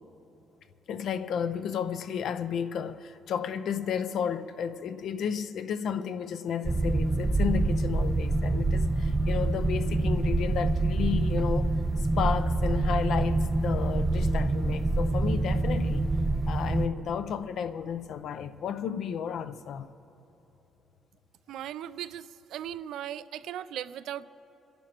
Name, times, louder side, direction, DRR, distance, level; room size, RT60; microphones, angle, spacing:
voice 1, 0.9-16.1 16.5-19.9, left 7 dB, 70° left, 0.5 m, -32 dB
sound 1, 6.6-16.9, right 2 dB, 20° right, 0.5 m, -26 dB
voice 2, 21.5-24.3, right 11 dB, 80° right, 0.4 m, -38 dB
28.0 x 11.0 x 2.9 m
cardioid pair, 90°, 0 cm